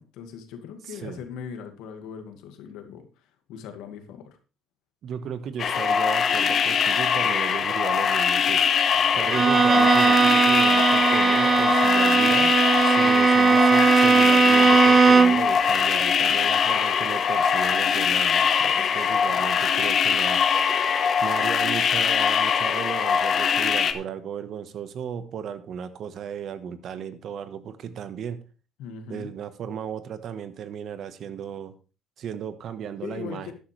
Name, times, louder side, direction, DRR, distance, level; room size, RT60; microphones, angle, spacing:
voice 1, 0.0-3.1 3.5-4.4 13.0-13.2 18.7-19.4 28.8-29.3 33.0-33.5, left 7 dB, 85° left, 7 dB, 2.1 m, -40 dB
voice 2, 0.9-1.2 5.0-8.6 9.1-20.4 21.2-28.4 29.1-31.7 32.2-33.5, right 8 dB, 60° right, 11 dB, 1.3 m, -35 dB
sound 1, 5.6-23.9, left 7 dB, 50° left, 1.2 m, -22 dB
Bowed string instrument, 9.3-15.5, right 5 dB, 30° right, 0.4 m, -18 dB
12.5 x 10.5 x 3.4 m, 0.34 s
cardioid pair, 105°, 0 cm